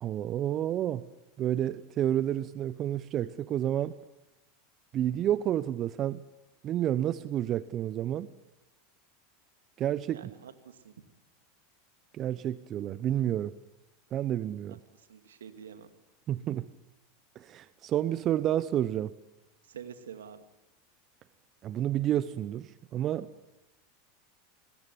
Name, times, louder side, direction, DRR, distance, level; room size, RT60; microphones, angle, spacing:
voice 1, 0.0-1.0 1.4-4.0 4.9-6.2 6.6-8.3 9.8-10.2 12.1-13.5 14.1-14.8 16.3-16.7 17.4-19.1 21.6-23.3, right 11 dB, 40° right, 15 dB, 0.9 m, -30 dB
voice 2, 10.1-10.9 14.7-15.9 19.7-20.4, right 8 dB, 75° right, 8 dB, 2.3 m, -47 dB
26.5 x 21.0 x 9.4 m, 0.96 s
hypercardioid pair, 85°, 0 cm